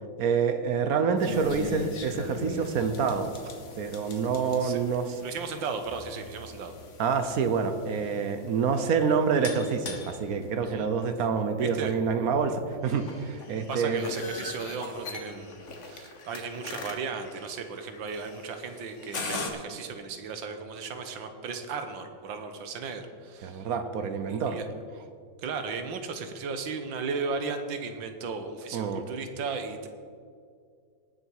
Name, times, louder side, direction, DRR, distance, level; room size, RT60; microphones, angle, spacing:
voice 1, 0.2-3.3 3.8-5.2 7.0-14.0 23.4-24.6 28.7-29.0, right 5 dB, 60° right, 9 dB, 1.1 m, -27 dB
sound 1, 1.2-19.5, left 3 dB, 45° left, 1.3 m, -41 dB
voice 2, 5.2-6.8 10.6-10.9 11.6-11.9 13.7-23.7 24.3-24.7 25.4-29.9, right 5 dB, 90° right, 7 dB, 1.7 m, -35 dB
18.5 x 6.8 x 4.7 m, 2.2 s
omnidirectional pair, 2.0 m